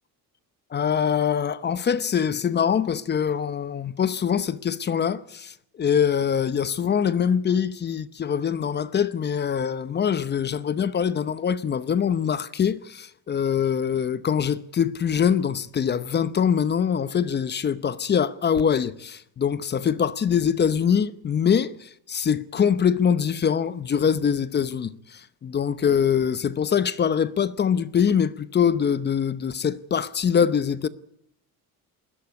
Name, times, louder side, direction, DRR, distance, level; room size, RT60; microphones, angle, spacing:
voice 1, 0.7-30.9, left 7 dB, 30° left, 0.8 m, -23 dB
21.0 x 17.0 x 9.5 m
cardioid pair, 170°, 35 cm